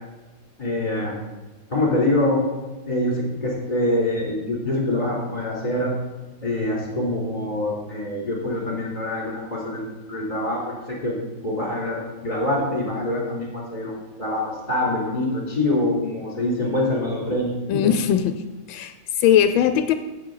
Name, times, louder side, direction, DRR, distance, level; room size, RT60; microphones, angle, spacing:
voice 1, 0.6-1.2 1.7-2.4 2.9-5.9 6.4-9.8 10.1-11.2 11.4-13.9 14.2-17.5, left 1 dB, 25° left, -4 dB, 3.4 m, -25 dB
voice 2, 17.7-18.4 18.7-19.9, left 10 dB, 85° left, 10 dB, 1.4 m, -19 dB
15.5 x 7.1 x 3.9 m, 1.2 s
omnidirectional pair, 2.2 m